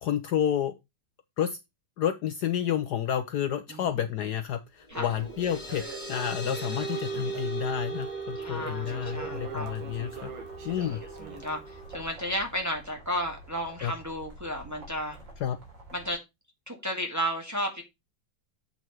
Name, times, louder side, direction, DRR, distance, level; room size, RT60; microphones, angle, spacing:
voice 1, 0.0-0.7 1.4-1.6 2.0-5.8 6.1-10.3 10.6-11.0 13.8-13.9 15.4-15.6, left 9 dB, 65° left, 1.1 m, -30 dB
sound 1, 4.9-12.0, right 4 dB, 25° left, 2.4 m, -38 dB
Crackle, 4.9-11.9, right 5 dB, 90° right, 2.4 m, -45 dB
voice 2, 8.4-9.7 10.8-15.2 15.9-16.2 16.7-17.8, equal, 10° right, 1.6 m, -33 dB
sound 2, 9.0-16.1, right 1 dB, 70° right, 3.8 m, -49 dB
7.9 x 5.6 x 4.6 m
omnidirectional pair, 2.1 m